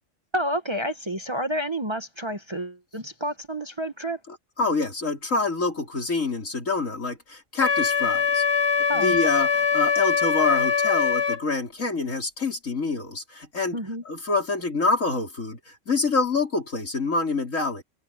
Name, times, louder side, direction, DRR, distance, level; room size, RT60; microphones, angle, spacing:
voice 1, 0.3-4.2 8.9-9.2 13.7-14.0, equal, 25° right, 1.0 m, -29 dB
voice 2, 4.6-8.6 8.9-13.8 14.1-17.8, left 3 dB, 80° left, 4.5 m, -26 dB
Wind instrument woodwind instrument, 7.6-11.4, left 6 dB, 55° left, 1.7 m, -22 dB
omnidirectional pair, 1.3 m